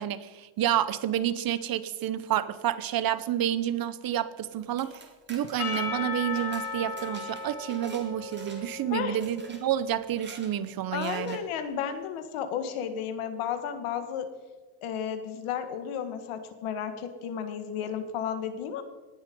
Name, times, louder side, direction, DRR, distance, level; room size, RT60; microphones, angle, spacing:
voice 1, 0.0-5.0 5.3-11.4, right 11 dB, 45° right, 15 dB, 0.7 m, -29 dB
sound 1, 4.6-8.0 8.3-8.8 9.2-9.6 10.1-10.5 11.0-11.4, right 3 dB, 20° right, 2.3 m, -47 dB
Percussion / Church bell, 5.6-9.9, left 4 dB, 45° left, 3.5 m, -36 dB
voice 2, 10.9-14.3 14.8-18.8, left 8 dB, 90° left, 8 dB, 1.8 m, -33 dB
18.5 x 11.0 x 5.3 m, 1.3 s
cardioid pair, 170°, 49 cm